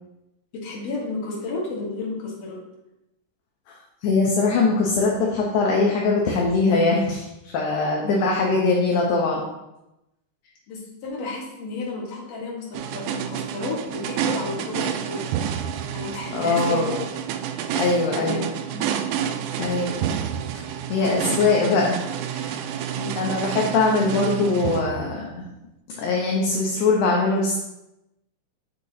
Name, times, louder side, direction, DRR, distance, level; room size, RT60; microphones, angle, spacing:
voice 1, 0.5-2.6 8.0-8.3 10.7-15.4 15.9-17.0 18.1-19.0 19.3-19.6 20.0-20.3 21.0-21.1 22.9-23.2, left 2 dB, 55° left, -3 dB, 2.5 m, -32 dB
voice 2, 4.0-7.3 7.5-9.4 16.3-16.9 17.7-18.5 19.6-20.1 20.9-22.0 22.3-22.6 23.2-25.4 26.0-27.6, left 3 dB, 70° left, -2 dB, 2.2 m, -21 dB
sound 1, 12.7-25.5, right 9 dB, 85° right, 1.7 m, -29 dB
7.2 x 6.6 x 2.8 m, 0.92 s
omnidirectional pair, 4.0 m